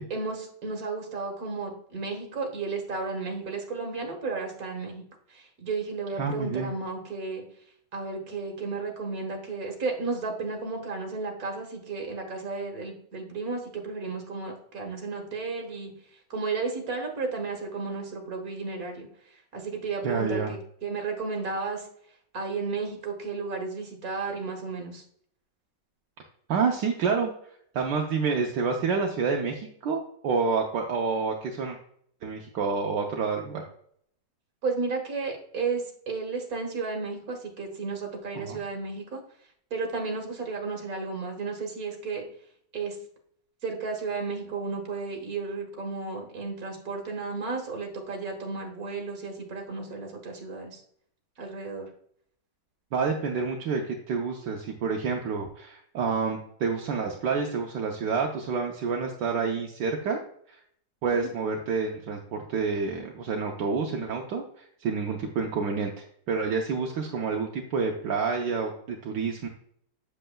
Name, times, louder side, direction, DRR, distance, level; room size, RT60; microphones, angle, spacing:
voice 1, 0.1-5.0 5.3-7.4 7.9-21.9 22.3-25.0 34.6-39.2 39.7-42.2 42.7-43.0 43.6-50.8 51.4-51.9 61.1-61.3, right 4 dB, 50° right, 2 dB, 1.9 m, -33 dB
voice 2, 6.2-6.7 20.0-20.5 26.5-27.3 27.7-31.8 32.2-33.6 38.3-38.6 52.9-60.2 60.5-60.6 61.0-69.5, right 5 dB, 75° right, 1 dB, 1.4 m, -28 dB
7.7 x 7.5 x 2.3 m, 0.65 s
omnidirectional pair, 2.0 m